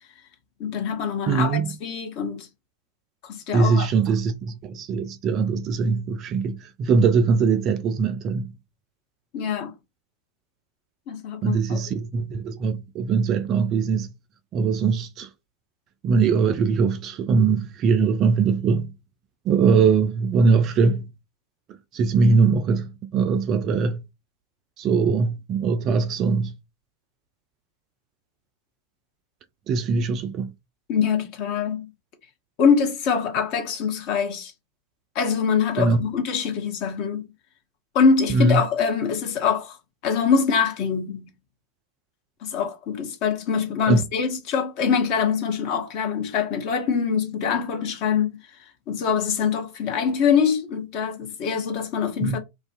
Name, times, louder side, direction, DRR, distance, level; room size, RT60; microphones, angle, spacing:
voice 1, 0.6-2.5 3.2-3.9 9.3-9.7 11.1-11.8 30.9-31.9 32.6-34.5 35.1-37.3 37.9-39.7 40.0-41.3 42.4-48.4 48.9-52.4, left 6 dB, 40° left, 0.7 m, -24 dB
voice 2, 1.3-1.7 3.5-8.5 11.4-14.1 14.5-15.3 16.0-18.9 19.5-21.1 21.9-24.0 24.8-26.5 29.7-30.5 35.8-36.0 38.3-38.6 43.9-44.0 52.2-52.4, right 5 dB, 35° right, 0.3 m, -21 dB
2.4 x 2.3 x 2.4 m
figure-of-eight pair, 90°, 0 cm